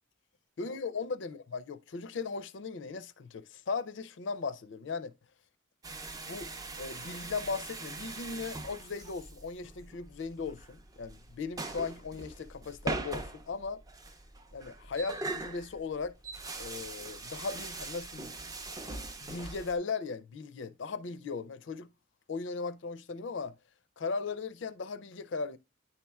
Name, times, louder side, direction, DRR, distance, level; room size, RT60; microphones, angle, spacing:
voice 1, 0.6-5.1 6.3-6.5 6.8-13.8 14.5-16.2 16.6-18.3 19.2-21.9 22.3-23.5 24.0-25.6, left 4 dB, 60° left, 0.4 m, -37 dB
sound 1, 5.8-19.8, right 2 dB, 15° right, 0.4 m, -41 dB
9.8 x 4.2 x 2.3 m
head